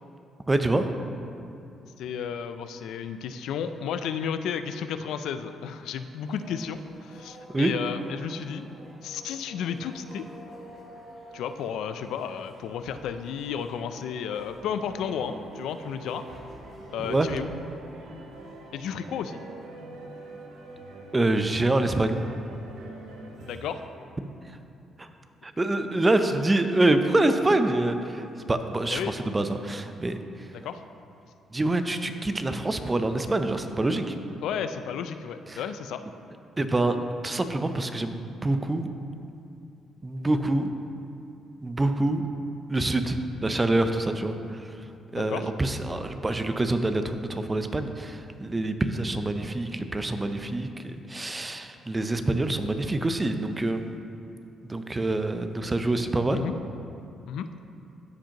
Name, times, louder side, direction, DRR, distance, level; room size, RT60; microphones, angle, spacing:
voice 1, 0.5-0.9 7.5-7.7 17.1-17.3 21.1-22.3 25.0-25.1 25.4-30.2 31.5-34.1 35.5-35.6 36.6-37.0 37.2-38.9 40.0-40.7 41.6-42.2 42.7-44.7 45.1-53.9 54.6-56.4, right 2 dB, 20° right, 8 dB, 0.5 m, -26 dB
voice 2, 2.0-8.7 9.0-10.3 11.3-16.2 16.9-17.5 18.7-19.4 23.4-23.8 28.9-29.1 30.5-30.8 34.4-36.0 45.1-45.5 56.3-56.5 57.3-57.5, left 7 dB, 80° left, 10 dB, 0.3 m, -33 dB
sound 1, 6.2-17.3, right 1 dB, 65° right, 2.0 m, -49 dB
sound 2, 14.8-23.9, right 2 dB, 85° right, 0.9 m, -44 dB
14.5 x 5.0 x 2.9 m, 2.6 s
cardioid pair, 90°, 0 cm